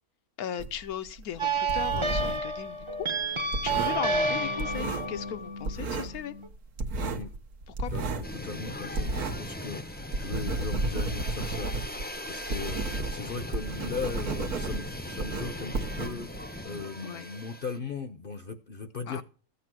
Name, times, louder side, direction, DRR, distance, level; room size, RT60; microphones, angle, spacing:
voice 1, 0.4-6.3 7.7-7.9 17.0-17.3 19.1-19.2, left 9 dB, 80° left, 1.3 m, -38 dB
sound 1, 0.6-2.5 2.8-5.4 5.6-6.2 6.5-9.6 9.9-16.6, right 3 dB, 80° right, 1.7 m, -33 dB
sound 2, 1.4-6.5, right 3 dB, 25° right, 0.7 m, -30 dB
voice 2, 7.0-7.3 7.9-8.1 8.4-11.7 12.3-19.2, left 5 dB, 45° left, 0.8 m, -38 dB
sound 3, 8.2-17.8, left 1 dB, 10° left, 0.5 m, -39 dB
14.5 x 8.3 x 6.1 m
omnidirectional pair, 1.6 m